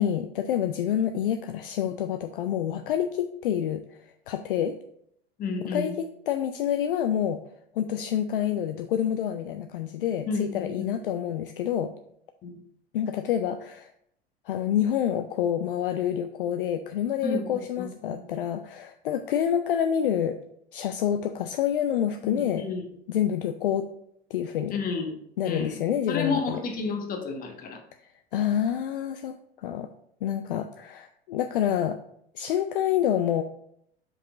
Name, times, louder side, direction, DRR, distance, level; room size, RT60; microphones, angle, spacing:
voice 1, 0.0-4.8 5.6-7.4 7.7-11.9 12.9-13.9 14.5-20.4 20.7-22.6 23.1-23.9 24.3-24.8 25.4-26.6 28.0-29.9 30.2-32.0 32.3-33.4, left 10 dB, 60° left, 8 dB, 0.5 m, -27 dB
voice 2, 5.4-5.9 10.3-11.0 12.4-12.5 17.2-17.5 17.8-18.2 22.2-22.8 24.7-25.8 26.1-27.8, left 4 dB, 25° left, 4 dB, 1.2 m, -31 dB
5.5 x 4.9 x 3.8 m, 0.71 s
figure-of-eight pair, 80°, 32 cm